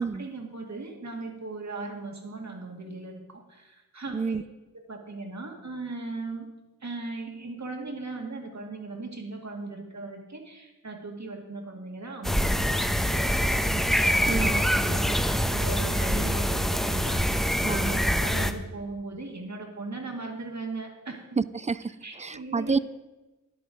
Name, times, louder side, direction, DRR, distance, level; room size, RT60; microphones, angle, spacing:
voice 1, 0.2-4.3 4.7-6.5 6.8-21.4 22.0-22.8, right 3 dB, 55° right, 2 dB, 2.2 m, -38 dB
sound 1, 12.2-18.5, equal, ahead, 0.8 m, -25 dB
voice 2, 14.3-14.6 17.6-18.0 21.4-22.8, right 4 dB, 20° right, 17 dB, 0.4 m, -29 dB
10.5 x 8.6 x 5.1 m, 1.1 s
cardioid pair, 55°, 34 cm